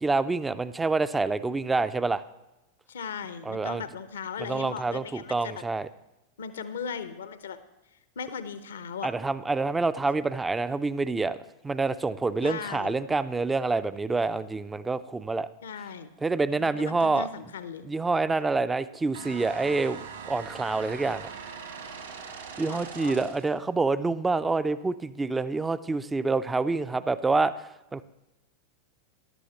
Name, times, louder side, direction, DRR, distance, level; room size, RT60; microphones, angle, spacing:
voice 1, 0.0-2.2 3.5-3.8 4.4-5.9 9.0-11.4 11.6-15.5 16.2-17.3 17.8-21.3 22.6-28.0, right 3 dB, 10° right, 14 dB, 0.4 m, -27 dB
voice 2, 2.9-5.6 6.4-7.6 8.2-9.1 12.4-12.9 15.6-16.1 16.6-17.9 22.6-23.2, left 6 dB, 65° left, 13 dB, 0.7 m, -37 dB
sound 1, 19.1-23.6, right 6 dB, 65° right, 2.3 m, -41 dB
14.0 x 11.5 x 2.9 m, 0.99 s
figure-of-eight pair, 90°, 0 cm